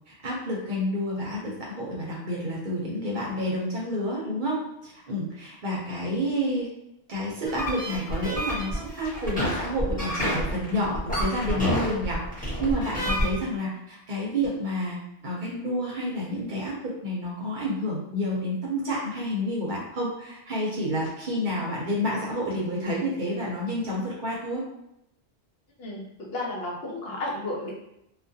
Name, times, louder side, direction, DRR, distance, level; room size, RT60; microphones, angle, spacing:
voice 1, 0.1-4.6 4.8-6.7 7.1-15.0 15.2-24.6, equal, 55° right, -4 dB, 0.7 m, -29 dB
sound 1, 7.5-13.3, equal, 10° left, 1.1 m, -29 dB
voice 2, 26.3-27.7, left 2 dB, 65° left, -3 dB, 0.8 m, -32 dB
2.4 x 2.2 x 2.6 m, 0.82 s
omnidirectional pair, 1.1 m